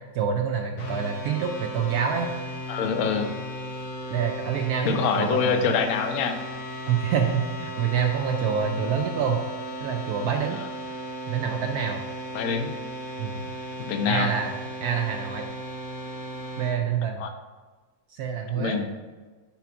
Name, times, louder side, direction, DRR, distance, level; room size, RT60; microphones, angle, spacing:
voice 1, 0.1-2.3 4.1-5.7 6.9-9.4 9.8-10.6 11.3-12.0 13.2-13.5 14.1-14.6 14.8-15.5 16.6-17.2 18.1-18.8, right 7 dB, 80° right, 3 dB, 0.8 m, -26 dB
sound 1, 0.8-16.8, equal, 85° left, 1.8 m, -36 dB
voice 2, 2.7-3.3 4.8-6.4 10.5-10.6 12.3-12.7 13.8-14.3 17.2-17.3 18.6-18.9, left 6 dB, 70° left, 6 dB, 0.8 m, -25 dB
5.9 x 3.9 x 5.8 m, 1.3 s
omnidirectional pair, 2.2 m